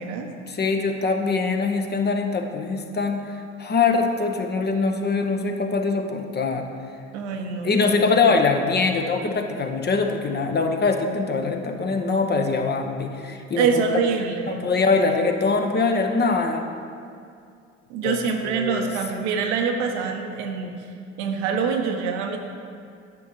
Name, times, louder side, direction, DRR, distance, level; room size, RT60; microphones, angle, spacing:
voice 1, 0.5-6.7 7.6-13.7 14.5-16.6 18.0-18.9, left 4 dB, 30° left, 4 dB, 0.8 m, -23 dB
voice 2, 7.1-7.9 13.6-14.6 17.9-20.7 21.2-22.4, right 5 dB, 70° right, 3 dB, 0.9 m, -25 dB
10.5 x 7.3 x 3.1 m, 2.4 s
figure-of-eight pair, 60°, 36 cm